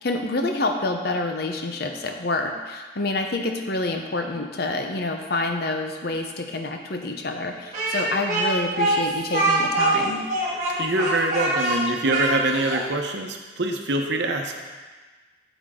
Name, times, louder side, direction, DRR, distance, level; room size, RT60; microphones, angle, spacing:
voice 1, 0.0-10.2, left 2 dB, 55° left, 4 dB, 0.8 m, -27 dB
Speech, 7.7-12.8, right 2 dB, 40° right, 1.8 m, -24 dB
voice 2, 10.8-14.5, right 2 dB, 60° right, 3 dB, 0.9 m, -24 dB
8.8 x 7.2 x 3.7 m, 1.4 s
head